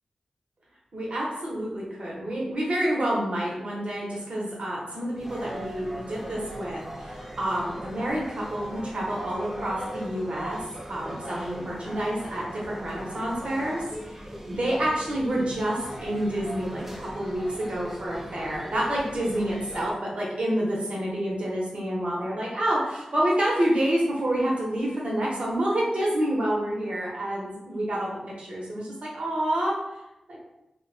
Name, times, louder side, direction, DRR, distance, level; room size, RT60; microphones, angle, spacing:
voice 1, 0.9-10.6 10.9-29.7 30.3-30.4, right 1 dB, 65° right, -4 dB, 0.9 m, -28 dB
sound 1, 5.1-19.9, right 1 dB, 10° right, 0.4 m, -39 dB
2.5 x 2.2 x 2.6 m, 0.90 s
cardioid pair, 40°, 2 cm